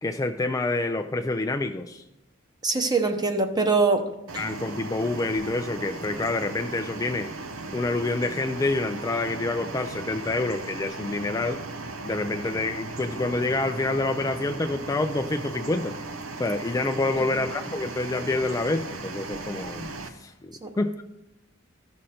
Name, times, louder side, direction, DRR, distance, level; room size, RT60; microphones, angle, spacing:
voice 1, 0.0-2.0 4.4-7.3 7.7-11.6 12.0-15.9 16.4-20.9, left 2 dB, 15° left, 6 dB, 0.4 m, -27 dB
voice 2, 2.6-4.1 20.6-20.7, right 3 dB, 20° right, 6 dB, 0.9 m, -23 dB
sound 1, 4.3-20.1, right 3 dB, 85° right, 0.9 m, -37 dB
15.0 x 6.3 x 4.3 m, 0.92 s
head